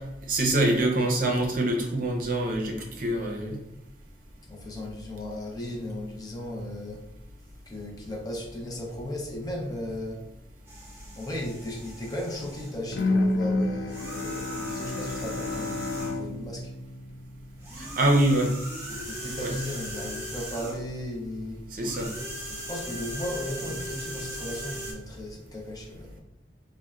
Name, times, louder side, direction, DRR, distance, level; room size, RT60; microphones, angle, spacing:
voice 1, 0.3-3.6 17.8-18.5 19.4-19.5 21.7-22.1, right 1 dB, 50° right, 1 dB, 0.6 m, -25 dB
voice 2, 4.5-7.1 7.7-10.2 11.1-16.7 18.9-21.6 22.5-26.2, left 1 dB, 20° left, -2 dB, 0.6 m, -36 dB
sound 1, 10.7-12.8 13.8-16.3 17.6-20.9 21.8-24.9, right 1 dB, 15° right, 0.7 m, -38 dB
Bowed string instrument, 12.9-18.0, left 2 dB, 65° left, 0.3 m, -30 dB
4.1 x 2.1 x 2.4 m, 0.92 s
head